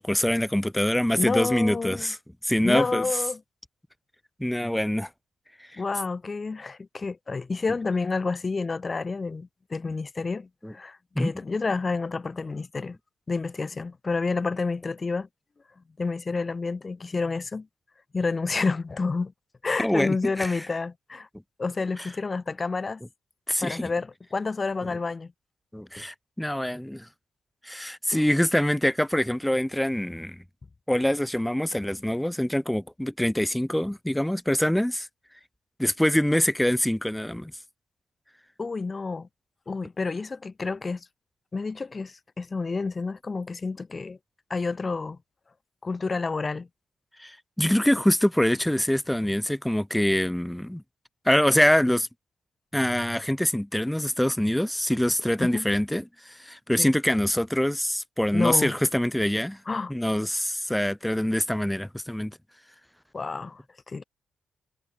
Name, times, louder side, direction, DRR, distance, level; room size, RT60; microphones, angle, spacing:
voice 1, 0.0-2.2 2.4-3.1 4.4-5.1 10.6-10.7 11.2-11.3 19.8-20.5 23.5-23.9 25.7-27.1 27.6-30.4 30.9-35.1 35.8-37.5 47.2-50.8 51.3-52.1 52.7-59.6 59.9-62.4, left 1 dB, 5° left, 0.4 m, -25 dB
voice 2, 1.2-2.1 2.6-3.4 5.8-13.0 13.3-15.3 16.0-17.7 18.1-19.3 19.6-21.3 21.6-23.0 23.6-25.3 28.1-28.2 38.6-39.3 39.7-41.1 41.5-44.2 44.5-45.2 45.8-46.7 55.4-55.7 56.8-56.9 58.3-58.7 59.7-59.9 63.1-63.6 63.9-64.0, left 4 dB, 35° left, 0.9 m, -29 dB
hypercardioid pair, 45°, 0 cm